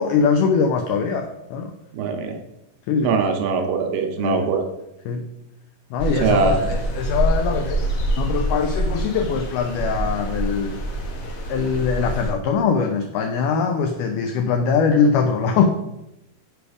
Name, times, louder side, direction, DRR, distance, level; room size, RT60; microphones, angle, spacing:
voice 1, 0.0-1.7 2.9-3.2 4.2-4.5 5.1-5.2 5.9-7.8 8.2-10.8 11.5-15.7, left 5 dB, 85° left, 5 dB, 1.8 m, -22 dB
voice 2, 1.9-2.4 3.0-4.6 6.1-6.7, right 5 dB, 75° right, 4 dB, 2.2 m, -22 dB
sound 1, 6.0-12.3, right 1 dB, 70° left, 1.4 m, -25 dB
6.9 x 4.9 x 4.9 m, 0.88 s
omnidirectional pair, 4.3 m